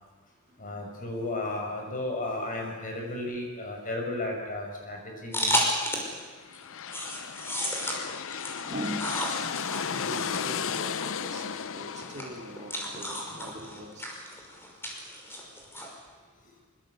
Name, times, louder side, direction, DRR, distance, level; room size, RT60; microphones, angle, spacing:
voice 1, 0.6-5.8 7.1-7.2, left 2 dB, 40° left, 1 dB, 6.1 m, -34 dB
sound 1, 5.3-6.2 6.5-15.9, equal, 10° left, 5.5 m, -33 dB
sound 2, 6.4-14.0, left 7 dB, 65° left, 0.8 m, -35 dB
voice 2, 8.6-9.2 9.9-14.1, equal, 35° right, 1 dB, 4.1 m, -41 dB
24.5 x 24.5 x 8.2 m, 1.4 s
head